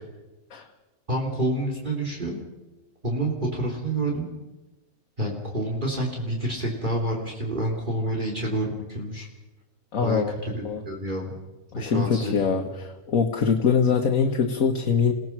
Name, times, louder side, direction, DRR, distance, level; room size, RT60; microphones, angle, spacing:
voice 1, 1.1-2.4 3.0-4.3 5.2-9.3 10.0-11.4 11.8-12.3, right 1 dB, 35° right, -1 dB, 3.6 m, -28 dB
voice 2, 9.9-10.3 10.6-10.8 11.7-15.1, left 6 dB, 75° left, 3 dB, 1.8 m, -23 dB
29.0 x 18.0 x 6.1 m, 1.1 s
omnidirectional pair, 1.4 m